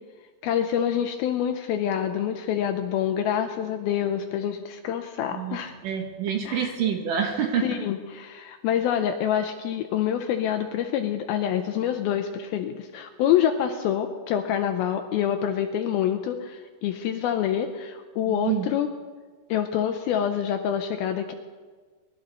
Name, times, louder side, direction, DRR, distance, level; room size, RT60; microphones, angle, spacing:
voice 1, 0.4-5.8 6.5-6.7 7.6-18.9 19.5-21.3, left 9 dB, 80° left, 6 dB, 2.3 m, -26 dB
voice 2, 5.3-7.7 18.3-18.7, right 8 dB, 65° right, 3 dB, 2.4 m, -27 dB
23.5 x 12.0 x 4.1 m, 1.5 s
omnidirectional pair, 4.9 m